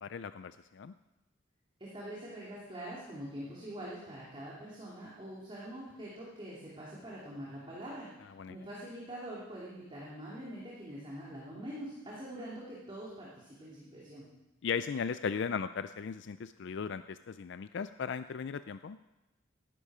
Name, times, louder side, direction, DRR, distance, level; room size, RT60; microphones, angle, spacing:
voice 1, 0.0-0.9 8.4-8.6 14.6-19.0, left 6 dB, 60° left, 12 dB, 0.4 m, -37 dB
voice 2, 1.8-14.3, right 1 dB, 25° right, -6 dB, 2.9 m, -44 dB
17.5 x 12.0 x 5.0 m, 1.0 s
head